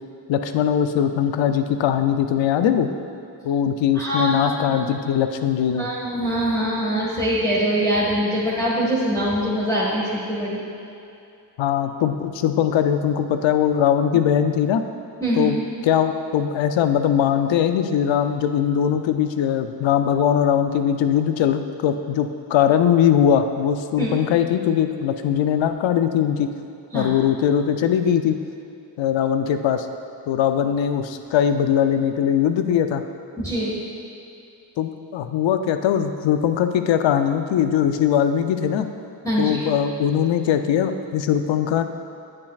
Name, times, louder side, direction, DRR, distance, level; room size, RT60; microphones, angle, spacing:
voice 1, 0.3-2.9 3.4-5.9 11.6-14.8 15.4-15.6 15.8-26.5 26.9-28.4 29.0-29.9 30.3-33.0 34.8-38.9 39.4-41.8, left 9 dB, 85° left, 8 dB, 0.5 m, -20 dB
voice 2, 3.9-4.8 5.8-10.6 15.2-15.5 24.0-24.1 26.9-27.1 33.4-33.8 39.2-39.6, equal, 5° left, -8 dB, 1.6 m, -23 dB
9.0 x 7.4 x 2.4 m, 2.7 s
cardioid pair, 45°, 44 cm